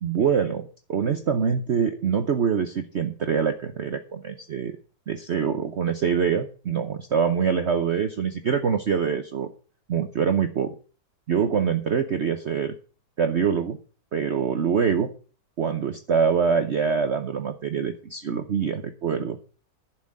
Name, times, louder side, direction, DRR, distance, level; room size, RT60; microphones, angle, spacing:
voice 1, 0.0-4.7 5.1-9.5 9.9-10.7 11.3-12.7 13.2-13.8 14.1-15.1 15.6-19.4, right 6 dB, 50° right, 8 dB, 0.9 m, -24 dB
11.0 x 6.0 x 7.3 m, 0.38 s
omnidirectional pair, 1.9 m